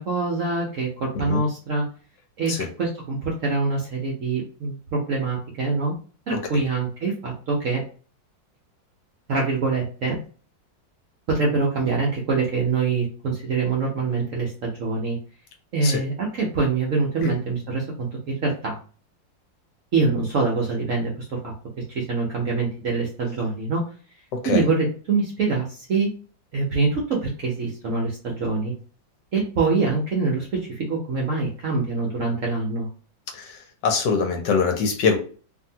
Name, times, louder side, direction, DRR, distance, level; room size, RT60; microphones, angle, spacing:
voice 1, 0.1-1.8 2.4-5.9 6.3-7.8 9.3-10.2 11.3-15.2 15.7-18.8 19.9-21.5 21.9-23.8 24.4-26.1 26.5-28.7 29.3-32.9, right 4 dB, 60° right, -2 dB, 0.8 m, -24 dB
voice 2, 33.8-35.2, left 5 dB, 70° left, 4 dB, 1.2 m, -23 dB
2.9 x 2.6 x 2.7 m, 0.39 s
omnidirectional pair, 2.1 m